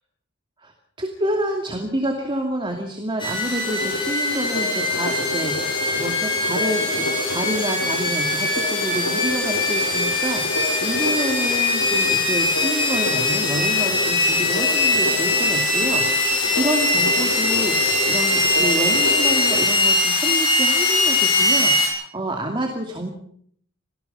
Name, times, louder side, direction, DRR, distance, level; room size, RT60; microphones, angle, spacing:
voice 1, 1.0-5.6 5.9-23.1, right 1 dB, 25° right, 2 dB, 2.5 m, -28 dB
sound 1, 3.2-21.9, left 2 dB, 25° left, 7.2 m, -21 dB
sound 2, 3.6-19.6, left 1 dB, 80° left, 5.7 m, -30 dB
27.0 x 18.5 x 5.6 m, 0.64 s
head